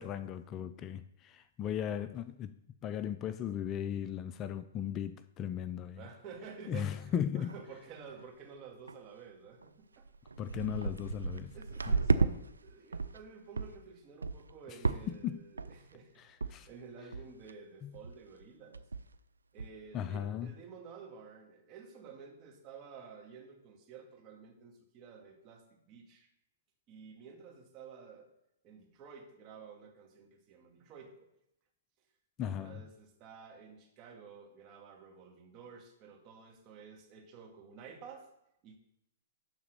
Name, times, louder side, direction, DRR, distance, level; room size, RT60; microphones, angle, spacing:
voice 1, 0.0-6.1 6.7-7.5 10.4-11.5 11.9-12.0 15.1-15.4 16.2-16.7 17.8-17.9 19.9-20.5 32.4-32.8, left 9 dB, 30° left, 0.4 m, -37 dB
voice 2, 6.0-10.1 11.5-18.8 19.5-26.3 26.9-28.3 28.6-31.3 32.4-38.3 38.6-38.8, right 5 dB, 35° right, 1.9 m, -52 dB
sound 1, 6.3-6.4 6.9-7.0 7.3-7.7 8.0-8.3 8.9-9.0 9.6-9.7 10.0-12.3 12.7-13.2 13.6-13.8 14.2-14.5 14.8-15.3 15.6-15.9 16.4-16.5 16.8-16.9 17.1-17.5 17.9-18.1 18.4-18.5 18.7-19.2 19.6-19.7, right 4 dB, 90° right, 0.4 m, -33 dB
11.5 x 4.0 x 6.7 m
hypercardioid pair, 120°, 0 cm